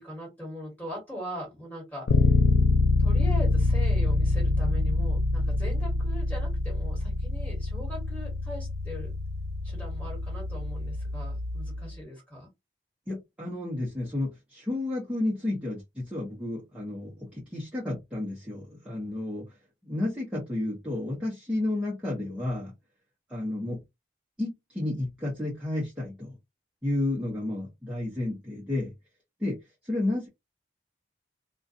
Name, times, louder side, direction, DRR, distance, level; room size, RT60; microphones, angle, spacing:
voice 1, 0.0-2.1 3.0-9.1 9.6-12.5, left 1 dB, 10° left, 1.5 m, -40 dB
Bass guitar, 2.1-11.9, left 2 dB, 85° left, 0.3 m, -26 dB
voice 2, 13.1-19.5 19.9-22.7 23.3-23.8 24.4-26.4 26.8-28.9 29.4-30.3, left 2 dB, 5° right, 0.7 m, -31 dB
2.4 x 2.2 x 2.5 m
head